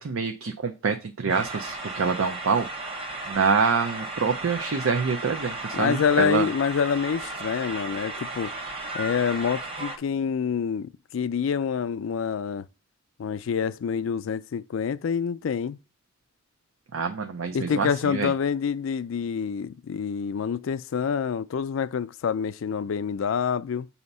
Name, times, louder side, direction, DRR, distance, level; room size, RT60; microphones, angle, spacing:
voice 1, 0.0-6.5 16.9-18.3, right 5 dB, 85° right, 0.6 m, -26 dB
sound 1, 1.3-10.0, right 2 dB, 30° right, 0.9 m, -35 dB
voice 2, 5.7-8.5 8.9-12.7 13.2-15.8 17.5-23.9, left 6 dB, 70° left, 0.4 m, -27 dB
6.9 x 2.8 x 5.3 m
head